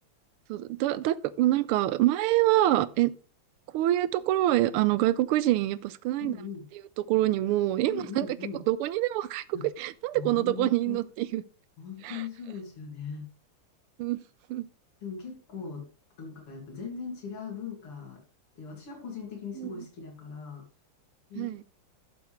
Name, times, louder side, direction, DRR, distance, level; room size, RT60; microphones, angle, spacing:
voice 1, 0.5-3.1 3.7-6.3 7.0-8.3 8.7-11.4 12.0-12.2 14.0-14.2 14.5-14.7 19.6-19.8 21.4-21.6, right 15 dB, 85° right, 1.5 m, -26 dB
voice 2, 6.2-6.6 7.9-8.6 9.5-9.7 10.1-11.0 11.8-13.3 15.0-15.9 16.2-18.2 18.6-20.6 21.3-21.6, left 6 dB, 85° left, 3.2 m, -39 dB
12.0 x 7.1 x 3.2 m
omnidirectional pair, 2.4 m